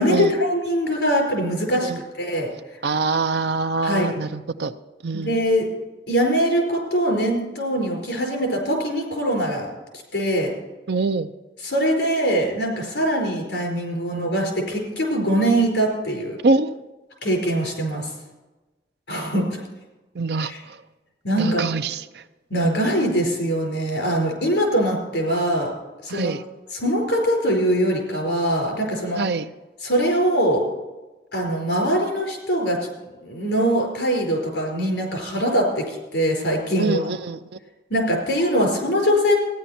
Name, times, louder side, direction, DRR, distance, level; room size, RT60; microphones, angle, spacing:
voice 1, 0.0-1.9 2.2-2.5 3.8-4.1 5.1-5.7 6.1-9.7 10.1-10.5 11.6-16.4 17.2-18.1 19.1-19.6 20.4-20.6 21.2-21.7 22.5-25.7 26.0-26.3 26.7-29.2 29.8-30.6 31.3-32.8 33.2-37.0 37.9-39.4, equal, 85° left, 1 dB, 4.6 m, -22 dB
voice 2, 2.8-4.7 5.0-5.4 10.9-11.3 16.4-16.7 20.1-20.8 21.4-22.2 26.1-26.4 29.2-29.5 36.8-37.4, right 3 dB, 70° right, 10 dB, 0.6 m, -24 dB
15.0 x 10.0 x 4.3 m, 1.1 s
head